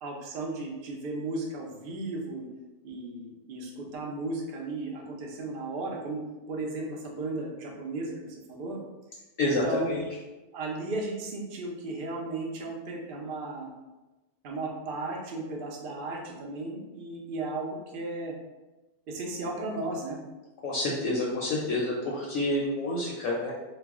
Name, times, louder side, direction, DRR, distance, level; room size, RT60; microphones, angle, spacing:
voice 1, 0.0-2.5 2.8-6.2 6.5-8.8 9.4-10.0 10.5-13.7 14.4-18.4 19.1-20.2, right 2 dB, 75° right, 0 dB, 0.5 m, -35 dB
voice 2, 9.4-10.0 20.6-23.5, left 2 dB, 70° left, -3 dB, 0.9 m, -28 dB
2.3 x 2.1 x 3.5 m, 1.1 s
omnidirectional pair, 1.6 m